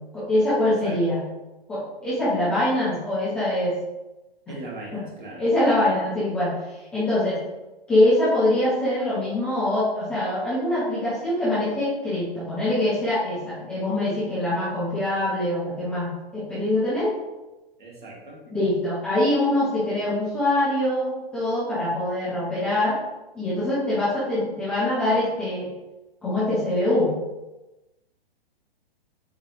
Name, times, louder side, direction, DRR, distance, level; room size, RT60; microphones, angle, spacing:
voice 1, 0.1-1.2 1.7-3.7 4.9-5.0 5.4-6.5 6.9-7.4 7.9-17.1 18.5-23.0 23.3-25.7 26.2-27.1, left 1 dB, 5° left, -11 dB, 0.3 m, -23 dB
voice 2, 4.5-5.4 17.8-18.4, right 2 dB, 50° right, -2 dB, 1.4 m, -39 dB
7.4 x 2.7 x 2.5 m, 1.0 s
figure-of-eight pair, 115°, 31 cm